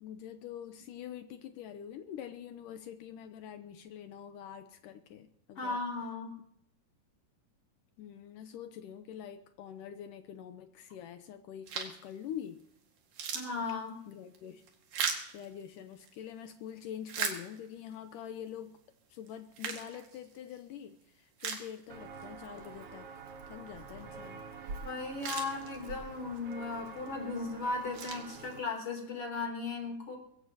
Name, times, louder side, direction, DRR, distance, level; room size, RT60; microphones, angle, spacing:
voice 1, 0.0-5.8 8.0-12.6 14.1-14.6 15.3-18.8 19.1-23.1 23.5-24.4, left 9 dB, 80° left, 8 dB, 2.3 m, -45 dB
voice 2, 5.6-6.3 13.3-14.0 24.8-30.2, left 3 dB, 45° left, 1 dB, 4.0 m, -36 dB
sound 1, 11.7-12.1 12.6-12.7 13.0-16.2 16.7-17.9 18.5-18.6 19.3-20.6 21.0-21.1 21.4-22.2 22.6-22.7 24.7-24.8 25.0-26.1 26.7-27.1 27.6-28.9, right 6 dB, 80° right, 3.7 m, -39 dB
Walk footsteps, 21.9-28.6, right 4 dB, 55° right, 2.1 m, -47 dB
22.5 x 16.5 x 2.9 m, 0.71 s
omnidirectional pair, 3.9 m